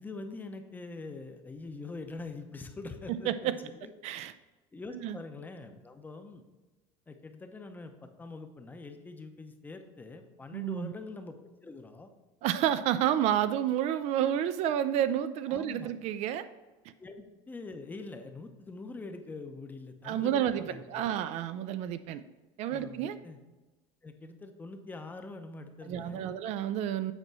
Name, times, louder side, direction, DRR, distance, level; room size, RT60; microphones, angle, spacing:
voice 1, 0.0-3.9 4.7-6.4 7.1-12.1 15.5-15.9 17.0-20.8 21.1-21.2 22.7-23.4 24.0-26.4, left 3 dB, 15° left, 6 dB, 0.7 m, -44 dB
voice 2, 10.5-10.9 12.4-16.5 20.0-22.2 22.6-23.2 25.8-27.1, right 10 dB, 55° right, 12 dB, 0.4 m, -30 dB
8.1 x 4.2 x 6.1 m, 1.1 s
cardioid pair, 145°, 14 cm